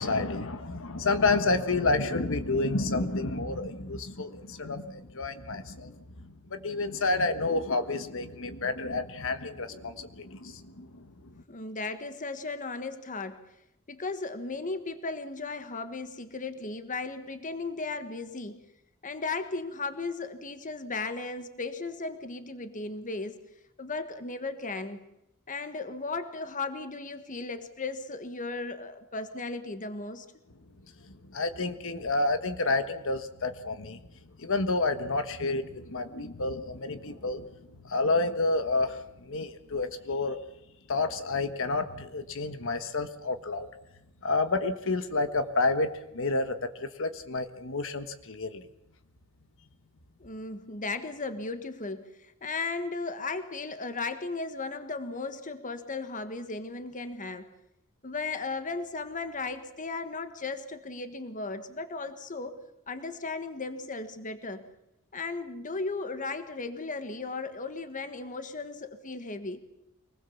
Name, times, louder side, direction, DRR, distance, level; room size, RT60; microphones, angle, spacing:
voice 1, 0.0-5.9 6.5-11.1 31.3-34.0 34.4-37.5 37.8-40.4 40.9-43.7 44.2-45.9 46.1-46.5 46.8-48.6, left 3 dB, 65° left, 9 dB, 1.4 m, -29 dB
voice 2, 11.5-13.4 13.9-18.6 19.0-23.4 23.8-25.0 25.5-30.3 50.2-57.5 58.0-62.6 62.9-64.6 65.1-69.6, left 3 dB, 35° left, 10 dB, 1.4 m, -36 dB
25.0 x 20.0 x 7.1 m, 0.82 s
head